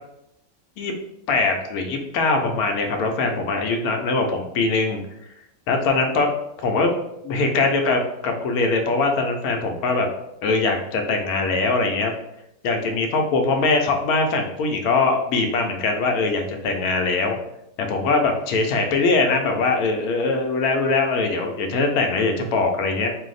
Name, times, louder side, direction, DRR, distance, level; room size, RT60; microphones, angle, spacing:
voice 1, 1.3-5.0 5.7-6.3 6.6-6.9 7.2-10.1 10.4-12.1 12.6-17.4 17.8-23.2, left 3 dB, 80° left, 4 dB, 1.1 m, -22 dB
2.6 x 2.0 x 3.9 m, 0.82 s
omnidirectional pair, 1.6 m